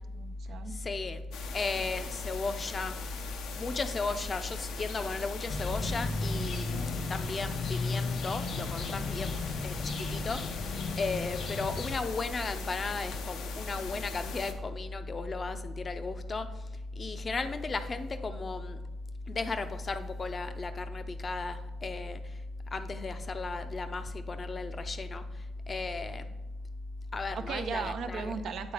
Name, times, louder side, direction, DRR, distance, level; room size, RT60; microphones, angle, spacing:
voice 1, 0.1-0.8 27.3-28.7, right 6 dB, 70° right, 9 dB, 0.5 m, -36 dB
voice 2, 0.7-1.2 1.5-2.9 3.6-10.6 11.0-16.5 16.9-18.8 19.3-22.2 22.7-25.2 25.7-26.4 27.1-28.3, left 3 dB, 35° left, 9 dB, 0.5 m, -35 dB
sound 1, 1.3-14.5, left 6 dB, 85° left, 0.6 m, -42 dB
sound 2, 5.5-12.0, left 3 dB, 60° left, 0.9 m, -34 dB
7.8 x 3.8 x 4.9 m, 1.1 s
cardioid pair, 90°, 0 cm